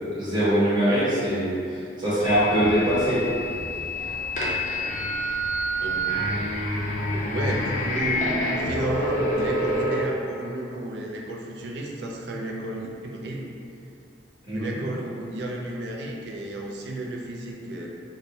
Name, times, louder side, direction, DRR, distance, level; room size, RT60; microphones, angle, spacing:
voice 1, 0.0-3.2 14.5-14.7, right 1 dB, 25° right, -12 dB, 0.8 m, -23 dB
sound 1, 2.2-10.0, equal, 40° left, 0.4 m, -27 dB
voice 2, 5.8-6.2 7.1-13.4 14.5-17.9, right 1 dB, 65° right, -1 dB, 0.4 m, -32 dB
2.6 x 2.2 x 3.2 m, 2.5 s
head